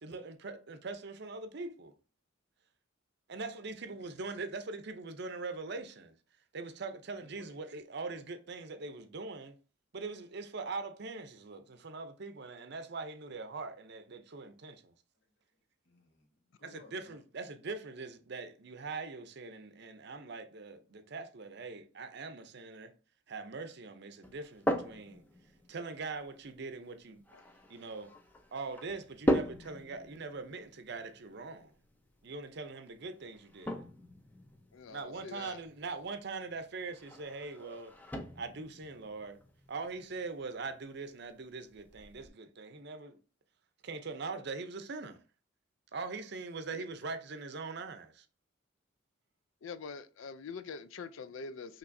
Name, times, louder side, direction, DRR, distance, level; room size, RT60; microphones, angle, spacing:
voice 1, 0.0-1.9 3.3-6.1 6.5-9.6 9.9-14.9 16.6-22.9 23.3-25.2 25.7-27.2 27.7-28.1 28.5-31.7 32.2-33.8 34.9-37.9 38.4-39.4 39.7-43.2 43.8-45.2 45.9-48.3, right 3 dB, 55° right, 0.6 m, -42 dB
voice 2, 3.8-4.2 7.2-7.6 15.3-17.2, left 2 dB, 60° left, 1.3 m, -60 dB
sound 1, 24.2-42.3, equal, 10° left, 0.5 m, -40 dB
voice 3, 34.7-35.6 46.7-46.8 49.6-51.8, left 5 dB, 75° left, 0.4 m, -44 dB
5.6 x 3.0 x 2.6 m
head